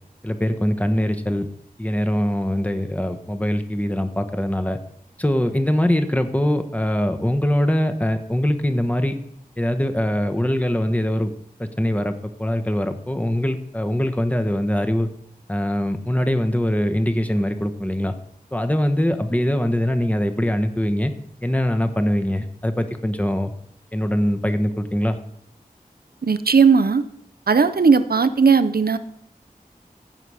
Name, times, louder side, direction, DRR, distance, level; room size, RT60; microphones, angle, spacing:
voice 1, 0.2-1.5 1.8-4.8 5.2-9.2 9.6-11.3 11.6-15.1 15.5-18.1 18.5-21.1 21.4-23.5 23.9-25.2, equal, 10° left, 7 dB, 1.0 m, -22 dB
voice 2, 26.2-27.0 27.5-29.0, right 5 dB, 85° right, 12 dB, 0.6 m, -16 dB
15.0 x 5.8 x 4.9 m, 0.71 s
wide cardioid pair, 45°, 15 cm